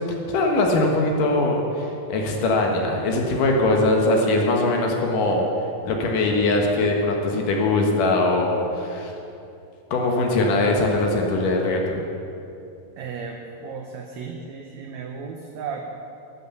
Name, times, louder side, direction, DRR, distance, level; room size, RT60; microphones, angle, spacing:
voice 1, 0.3-5.5 5.8-9.1 9.9-12.0, left 2 dB, 70° left, 1 dB, 2.7 m, -21 dB
voice 2, 13.0-15.9, right 5 dB, 70° right, 2 dB, 1.7 m, -34 dB
12.0 x 9.5 x 7.0 m, 2.7 s
omnidirectional pair, 4.1 m